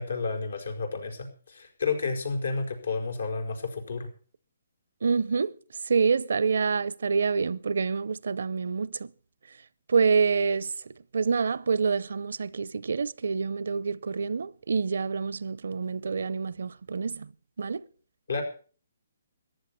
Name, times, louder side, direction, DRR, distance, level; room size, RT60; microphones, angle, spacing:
voice 1, 0.0-4.1 18.3-18.4, left 4 dB, 85° left, 5.0 m, -31 dB
voice 2, 5.0-5.5 5.9-9.1 9.9-17.3 17.6-17.8, right 5 dB, 70° right, 0.6 m, -27 dB
14.5 x 10.5 x 7.1 m
hypercardioid pair, 150°, 0 cm